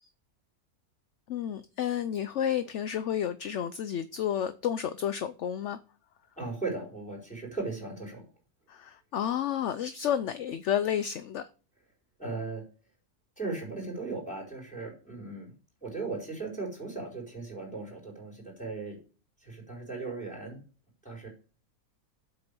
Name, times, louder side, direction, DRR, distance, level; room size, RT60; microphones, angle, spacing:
voice 1, 1.3-5.8 8.7-11.5, left 9 dB, 60° left, 0.8 m, -31 dB
voice 2, 6.4-8.2 12.2-12.6 13.4-15.5 15.8-19.0 19.4-20.6 21.0-21.3, right 3 dB, 5° left, 4.9 m, -37 dB
8.2 x 6.7 x 6.9 m
omnidirectional pair, 1.7 m